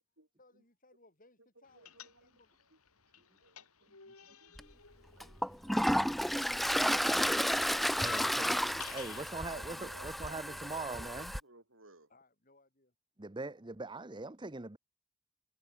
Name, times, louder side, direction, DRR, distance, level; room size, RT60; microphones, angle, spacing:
voice 1, 0.4-2.6 12.1-12.9, left 2 dB, 40° left, 8.0 m, -67 dB
voice 2, 1.6-2.4 2.7-2.8 3.2-3.9 4.3-7.9 9.0-12.1, right 2 dB, 60° right, 6.0 m, -60 dB
sound 1, 1.8-2.6 2.9-6.3 6.5-9.4, left 7 dB, 85° left, 3.8 m, -49 dB
Toilet flush, 4.6-4.7 5.2-11.4, equal, ahead, 0.3 m, -32 dB
voice 3, 7.9-11.3 13.2-14.8, right 3 dB, 20° right, 0.8 m, -42 dB
head